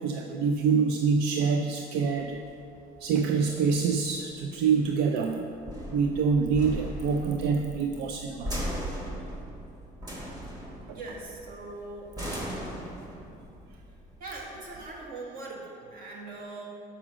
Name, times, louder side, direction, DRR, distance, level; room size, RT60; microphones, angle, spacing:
voice 1, 0.0-2.4 3.0-5.5 5.9-8.5 10.9-11.0, right 5 dB, 85° right, 4 dB, 0.4 m, -26 dB
sound 1, 2.3-15.1, equal, 25° right, 1.7 m, -39 dB
voice 2, 10.9-12.2 14.2-16.6, right 2 dB, 60° right, -2 dB, 1.6 m, -41 dB
6.0 x 5.0 x 6.1 m, 2.6 s
cardioid pair, 110°, 17 cm